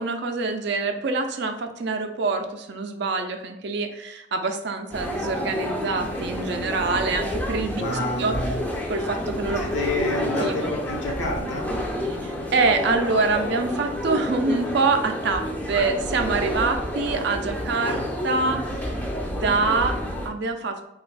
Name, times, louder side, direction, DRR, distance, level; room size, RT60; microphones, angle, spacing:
voice 1, 0.0-8.3 8.9-9.6 10.4-10.7 12.2-20.8, right 3 dB, 60° right, 6 dB, 0.4 m, -25 dB
sound 1, 4.9-20.3, equal, 10° left, 0.4 m, -29 dB
voice 2, 7.8-8.6 9.6-11.7, left 1 dB, 70° left, 0 dB, 0.8 m, -28 dB
3.3 x 2.4 x 3.2 m, 0.90 s
head